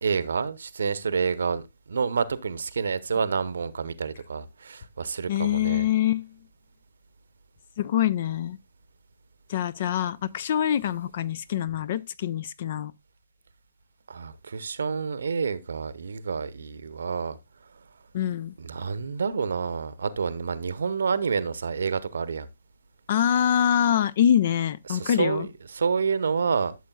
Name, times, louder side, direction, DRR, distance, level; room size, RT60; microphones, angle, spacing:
voice 1, 0.0-5.9 14.1-17.4 18.6-22.5 24.9-26.8, right 5 dB, 65° right, 0.8 m, -28 dB
voice 2, 5.3-6.3 7.8-8.6 9.5-12.9 18.1-18.5 23.1-25.5, left 10 dB, 50° left, 0.6 m, -24 dB
12.5 x 7.1 x 2.3 m
figure-of-eight pair, 130°, 0 cm